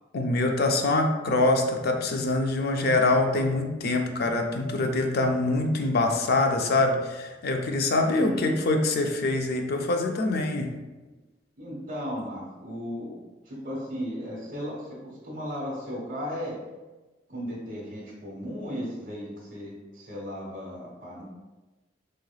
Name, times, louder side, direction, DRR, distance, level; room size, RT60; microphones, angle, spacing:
voice 1, 0.1-10.8, left 2 dB, 55° left, 4 dB, 0.4 m, -24 dB
voice 2, 8.0-8.5 11.1-11.2 11.6-13.2 13.5-16.5 17.3-21.2, equal, 45° right, -4 dB, 1.2 m, -35 dB
3.7 x 3.2 x 2.3 m, 1.2 s
head